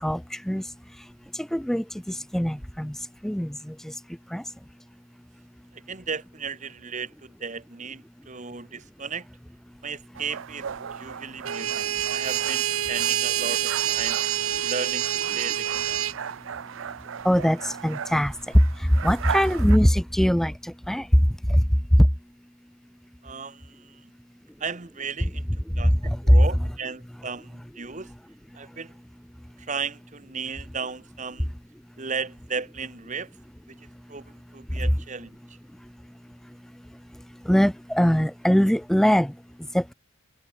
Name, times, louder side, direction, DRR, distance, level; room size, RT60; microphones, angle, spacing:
voice 1, 0.0-0.6 1.5-2.9 3.2-3.7 4.3-4.4 17.2-18.3 19.0-20.5 20.9-21.1 21.5-21.6 22.0-22.1 26.3-26.4 37.5-39.3 39.7-39.9, equal, ahead, 0.4 m, -21 dB
voice 2, 5.7-9.3 9.8-14.2 14.6-15.1 15.3-16.1 23.2-24.1 24.6-25.5 25.8-28.1 28.5-28.9 29.6-31.5 32.0-33.4 33.7-35.6, right 5 dB, 35° right, 1.2 m, -35 dB
sound 1, 10.1-19.8, right 7 dB, 65° right, 0.5 m, -37 dB
sound 2, 11.4-16.2, right 11 dB, 85° right, 1.1 m, -26 dB
head